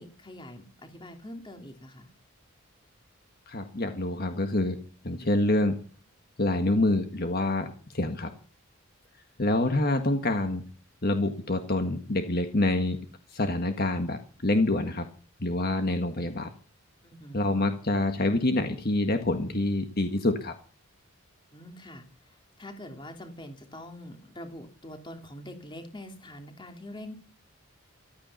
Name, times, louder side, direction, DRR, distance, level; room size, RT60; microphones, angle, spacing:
voice 1, 0.0-2.1 17.0-17.5 21.5-27.1, left 1 dB, 20° left, 5 dB, 2.9 m, -44 dB
voice 2, 3.5-4.8 5.0-5.8 6.4-8.3 9.4-10.6 11.0-13.0 13.3-15.1 15.4-16.5 17.3-20.5, left 2 dB, 45° left, 6 dB, 1.7 m, -26 dB
15.5 x 13.5 x 5.6 m, 0.37 s
head